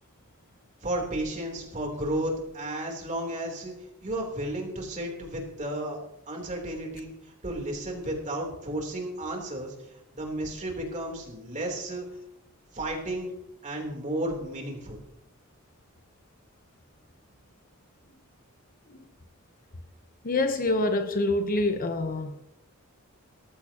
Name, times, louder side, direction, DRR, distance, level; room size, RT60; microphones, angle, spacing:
voice 1, 0.8-3.7 4.0-6.0 6.3-9.7 10.1-12.0 12.7-13.3 13.6-15.0, right 1 dB, 35° right, 3.5 m, -33 dB
voice 2, 20.2-22.4, left 2 dB, 40° left, 0.9 m, -26 dB
18.5 x 14.5 x 3.0 m
head